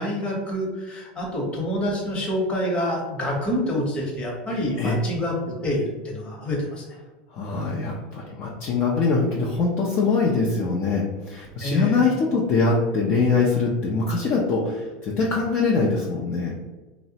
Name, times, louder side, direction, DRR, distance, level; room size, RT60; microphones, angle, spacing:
voice 1, 0.0-6.8 11.6-12.0, left 1 dB, 25° left, -2 dB, 0.9 m, -27 dB
voice 2, 7.3-16.5, left 4 dB, 40° left, -3 dB, 0.5 m, -23 dB
3.1 x 2.0 x 2.7 m, 1.2 s
supercardioid pair, 130°, 5 cm